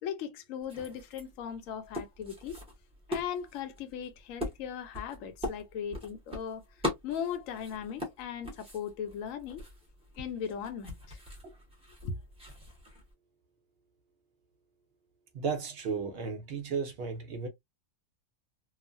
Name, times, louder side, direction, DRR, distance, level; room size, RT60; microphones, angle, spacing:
voice 1, 0.0-2.6 3.1-6.6 7.0-9.6 10.2-11.2 12.0-12.1, left 8 dB, 70° left, 1.0 m, -38 dB
sound 1, 0.6-13.1, left 1 dB, 5° right, 0.8 m, -41 dB
voice 2, 15.3-17.5, right 5 dB, 55° right, 0.8 m, -34 dB
3.0 x 2.1 x 2.5 m
omnidirectional pair, 1.5 m